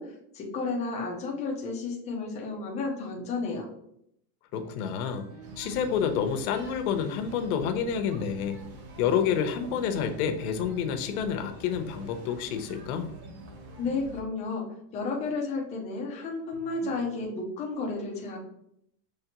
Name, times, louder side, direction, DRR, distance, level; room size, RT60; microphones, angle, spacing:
voice 1, 0.0-3.7 13.8-14.6 14.9-18.4, left 3 dB, 15° left, 0 dB, 0.4 m, -32 dB
voice 2, 4.5-5.2 5.6-8.6 9.0-13.1, left 7 dB, 65° left, 7 dB, 0.8 m, -29 dB
sound 1, 4.5-14.1 16.5-17.2, right 2 dB, 80° right, 1.6 m, -48 dB
sound 2, 5.4-14.2, right 1 dB, 60° right, 1.1 m, -48 dB
5.8 x 3.1 x 2.9 m, 0.73 s
supercardioid pair, 170°, 47 cm